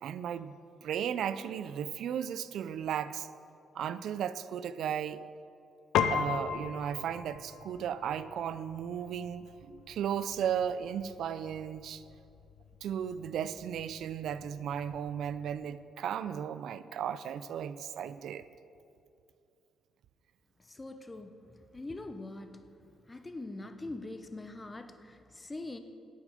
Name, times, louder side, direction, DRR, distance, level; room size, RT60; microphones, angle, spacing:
voice 1, 0.0-3.3 3.7-5.2 6.1-12.0 12.8-18.5, right 9 dB, 75° right, 14 dB, 0.3 m, -35 dB
Piano, 5.9-15.5, left 8 dB, 85° left, 0.5 m, -38 dB
voice 2, 20.6-21.3 21.7-22.6 23.1-25.8, left 2 dB, 20° left, 8 dB, 0.7 m, -42 dB
8.5 x 8.4 x 6.5 m, 2.6 s
cardioid pair, 90°, 0 cm